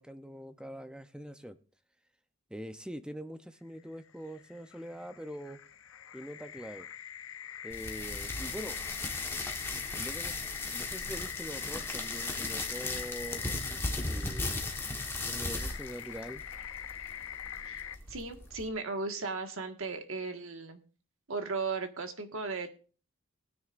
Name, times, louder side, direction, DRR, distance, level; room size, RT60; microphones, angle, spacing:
voice 1, 0.0-1.6 2.5-5.6 6.1-6.9 7.6-8.8 9.5-10.3 10.7-14.5 15.2-16.4, equal, 5° right, 9 dB, 0.6 m, -44 dB
sound 1, 3.9-18.0, left 9 dB, 65° left, 0.7 m, -43 dB
sound 2, 7.7-18.7, left 2 dB, 10° left, 1.3 m, -37 dB
voice 2, 18.1-20.8 21.3-22.7, right 4 dB, 65° right, 5 dB, 1.6 m, -36 dB
19.5 x 9.5 x 2.5 m, 0.38 s
head